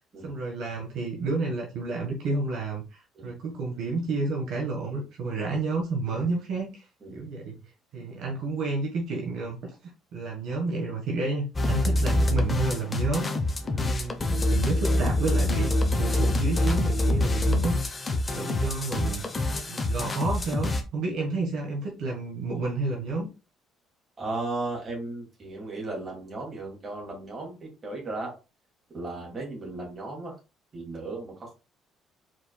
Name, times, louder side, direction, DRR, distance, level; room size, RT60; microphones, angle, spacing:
voice 1, 0.2-7.6 7.9-9.7 10.1-13.3 13.7-19.2 19.7-23.3, right 3 dB, 60° right, 0 dB, 1.4 m, -31 dB
sound 1, 11.5-20.8, left 1 dB, 20° left, 0.8 m, -25 dB
voice 2, 13.6-14.1 24.2-28.3 28.9-30.3 30.7-31.5, right 2 dB, 25° right, -1 dB, 2.4 m, -36 dB
4.8 x 4.5 x 2.3 m, 0.29 s
cardioid pair, 155°, 0 cm